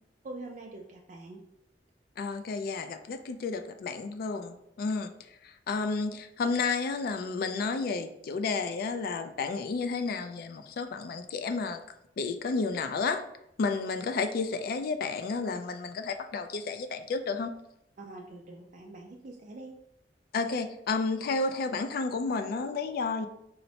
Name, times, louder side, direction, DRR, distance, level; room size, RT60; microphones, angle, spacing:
voice 1, 0.2-1.4 18.0-19.7, right 2 dB, 45° right, -1 dB, 0.3 m, -44 dB
voice 2, 2.2-5.1 5.4-11.8 12.2-13.2 13.6-17.5 20.3-23.3, left 4 dB, 55° left, 8 dB, 0.3 m, -31 dB
4.2 x 2.0 x 2.7 m, 0.80 s
head